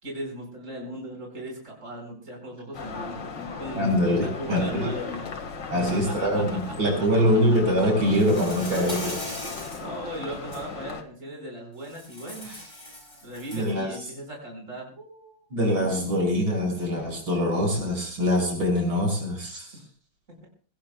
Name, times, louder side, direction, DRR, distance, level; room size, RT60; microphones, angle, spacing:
voice 1, 0.0-3.9 4.2-5.3 5.8-7.1 7.6-7.7 9.8-12.6 13.2-15.4 19.7-19.8, right 1 dB, 35° right, 0 dB, 5.4 m, -38 dB
sound 1, 2.7-11.0, left 5 dB, 60° left, 2.4 m, -37 dB
voice 2, 3.7-4.9 5.7-9.2 12.5-12.6 13.5-14.0 15.5-19.8, equal, 70° right, 2 dB, 6.6 m, -24 dB
Insect, 8.1-9.8 10.3-10.6 11.8-13.7, left 1 dB, 35° left, 6.7 m, -38 dB
26.0 x 17.5 x 2.3 m, 0.41 s
omnidirectional pair, 2.2 m